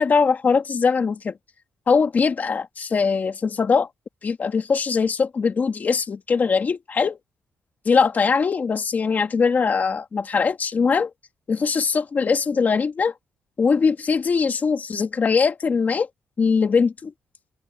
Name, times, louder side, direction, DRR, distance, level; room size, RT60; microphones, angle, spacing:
voice 1, 0.0-1.4 1.9-3.9 4.2-7.2 7.8-11.1 11.5-13.1 13.6-16.1 16.4-17.1, left 5 dB, 35° left, 2.5 m, -21 dB
wide cardioid pair, 160°, 5 cm